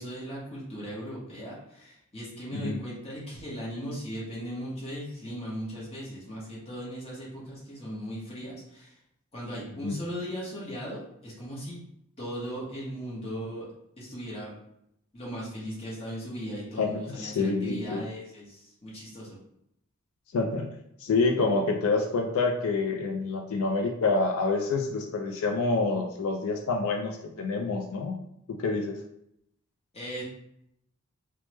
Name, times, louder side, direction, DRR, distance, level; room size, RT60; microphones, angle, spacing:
voice 1, 0.0-8.9 9.3-11.9 12.2-13.7 14.0-14.5 15.1-19.4 29.9-30.2, equal, 30° left, -6 dB, 1.0 m, -38 dB
voice 2, 16.8-18.0 20.3-20.7 21.0-28.2 28.5-29.0, left 3 dB, 85° left, 3 dB, 0.4 m, -27 dB
3.2 x 2.0 x 3.0 m, 0.77 s
head